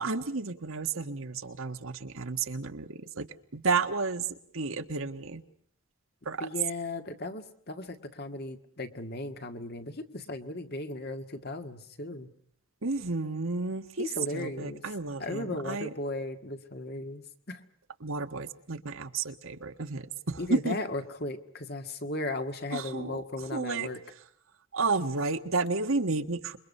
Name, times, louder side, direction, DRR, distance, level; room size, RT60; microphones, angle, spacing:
voice 1, 0.0-3.3 3.5-5.4 6.2-6.5 12.8-15.9 18.0-20.8 22.7-23.2 23.5-23.9 24.7-26.6, right 4 dB, 70° right, 8 dB, 1.5 m, -32 dB
voice 2, 6.4-12.3 14.0-14.8 15.2-17.6 20.4-24.0, left 2 dB, 45° left, 7 dB, 1.9 m, -36 dB
27.5 x 23.5 x 5.5 m, 0.64 s
head